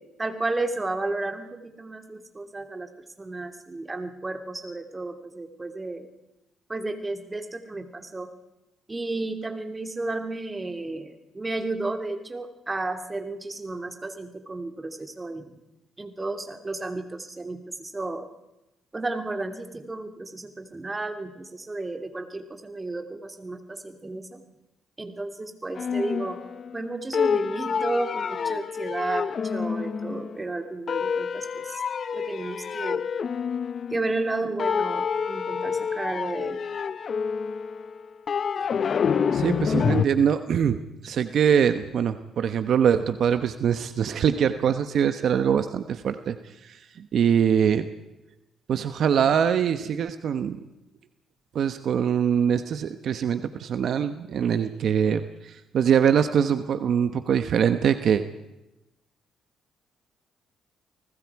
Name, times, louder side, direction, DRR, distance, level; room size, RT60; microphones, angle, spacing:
voice 1, 0.0-2.9 3.2-6.1 6.7-8.3 8.9-15.6 16.0-18.3 18.9-24.4 25.0-26.4 26.7-31.8 32.1-33.0 33.9-36.6, right 2 dB, 20° right, 6 dB, 2.6 m, -32 dB
sound 1, 25.8-26.9 27.1-30.4 30.9-34.3 34.6-40.1, left 6 dB, 50° left, 0.8 m, -28 dB
voice 2, 39.3-47.9 48.7-50.6 51.5-58.2, right 8 dB, 65° right, 10 dB, 1.1 m, -23 dB
30.0 x 19.5 x 4.8 m, 0.92 s
cardioid pair, 90°, 0 cm